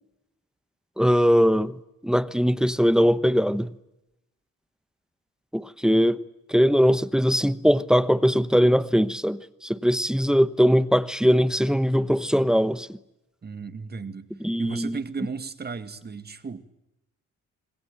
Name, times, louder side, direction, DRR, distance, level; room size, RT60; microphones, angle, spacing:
voice 1, 1.0-3.7 5.5-6.2 6.5-13.0 14.4-15.0, equal, ahead, 1.1 m, -21 dB
voice 2, 13.4-14.3 14.6-16.6, right 4 dB, 35° right, 2.1 m, -34 dB
27.0 x 21.0 x 8.9 m
cardioid pair, 90°, 30 cm